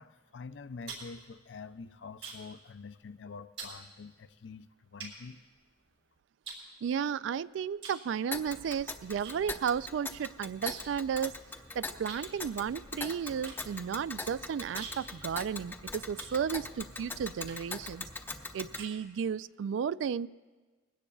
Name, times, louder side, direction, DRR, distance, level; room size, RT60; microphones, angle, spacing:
voice 1, 0.0-5.4, left 4 dB, 80° left, 12 dB, 0.5 m, -46 dB
sound 1, 0.5-2.6 2.9-3.2 3.6-3.8 4.4-4.5 5.0-6.0 6.4-7.3 7.8-8.1 8.4-9.4 9.6-9.7 10.0-11.0 11.3-11.4 12.1-16.8 17.4-17.8 18.3-19.4, right 5 dB, 65° right, 3.8 m, -47 dB
voice 2, 6.8-11.3 11.8-18.1 18.5-20.3, right 7 dB, 85° right, 18 dB, 0.3 m, -33 dB
Tick, 8.3-18.9, left 3 dB, 10° left, 0.7 m, -42 dB
20.5 x 16.5 x 2.3 m, 1.3 s
head